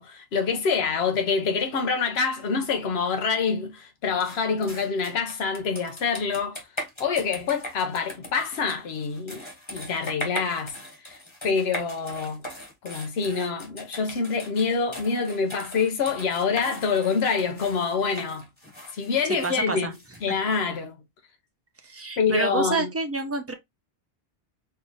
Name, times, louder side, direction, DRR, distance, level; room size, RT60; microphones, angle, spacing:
voice 1, 0.0-6.6 7.0-10.8 11.0-11.2 11.4-12.4 12.8-18.5 18.9-19.9 20.2-20.9 22.2-22.9, left 5 dB, 80° left, 1.1 m, -26 dB
sound 1, 4.2-20.6, left 1 dB, 25° left, 1.4 m, -40 dB
voice 2, 19.4-19.9 20.3-20.4 21.8-23.5, right 3 dB, 15° right, 0.6 m, -28 dB
4.4 x 2.6 x 3.1 m
omnidirectional pair, 1.0 m